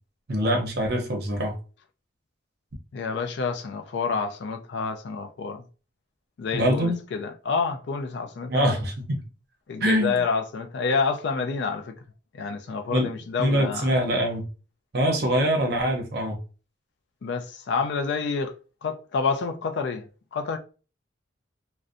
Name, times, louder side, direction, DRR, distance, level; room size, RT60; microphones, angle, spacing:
voice 1, 0.3-1.5 6.5-7.0 8.5-9.2 9.8-10.2 12.9-13.1 13.4-14.5 14.9-16.4, equal, 50° right, 0.6 m, -24 dB
voice 2, 2.9-5.6 6.4-8.8 9.7-11.9 12.3-13.9 17.2-18.5 18.8-20.6, left 5 dB, 60° left, 0.3 m, -28 dB
2.5 x 2.1 x 2.4 m
head